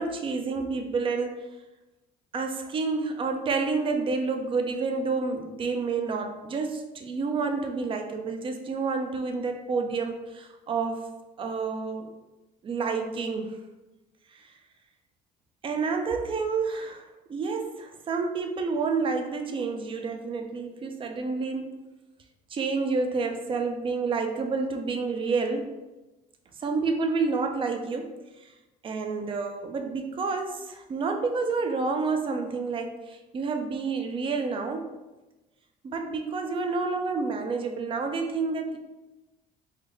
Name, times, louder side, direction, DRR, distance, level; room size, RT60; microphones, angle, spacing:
voice 1, 0.0-1.3 2.3-11.1 11.4-12.1 12.6-13.6 14.3-14.5 15.6-21.8 22.5-25.7 26.6-28.5 28.8-34.9 35.8-38.8, right 4 dB, 30° right, 5 dB, 0.4 m, -29 dB
3.8 x 2.1 x 3.2 m, 1.1 s
cardioid pair, 110°, 17 cm